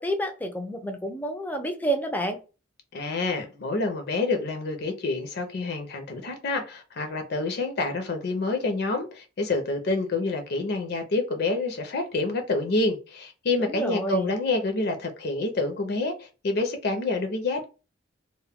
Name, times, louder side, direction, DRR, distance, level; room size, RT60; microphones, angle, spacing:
voice 1, 0.0-2.4 13.6-14.3, right 1 dB, 10° left, 0.4 m, -29 dB
voice 2, 2.9-17.6, left 3 dB, 55° left, 0.6 m, -28 dB
2.2 x 2.1 x 3.4 m
head